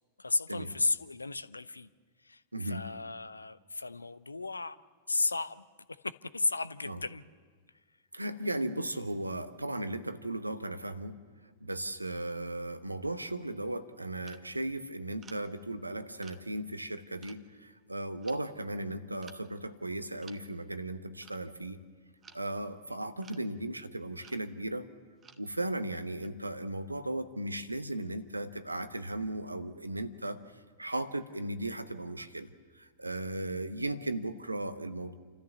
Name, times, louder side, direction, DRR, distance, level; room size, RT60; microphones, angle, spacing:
voice 1, 0.2-1.9 2.2-4.8 5.1-5.6 6.0-7.2, left 3 dB, 80° left, 17 dB, 0.6 m, -34 dB
voice 2, 2.5-2.9 6.8-7.0 8.1-11.2 11.6-21.8 22.3-24.9 25.4-32.5 32.7-35.1, right 1 dB, 85° right, 12 dB, 1.0 m, -36 dB
sound 1, 14.2-14.5 15.2-15.5 16.2-16.4 16.9-17.0 17.2-17.4 18.2-18.4 19.2-19.4 20.2-20.4 21.2-21.4 22.2-22.4 23.2-23.4 24.2-24.5 25.2-25.5 26.2-26.3, right 6 dB, 20° right, 1.1 m, -54 dB
28.0 x 14.0 x 7.1 m, 1.6 s
figure-of-eight pair, 95°, 0 cm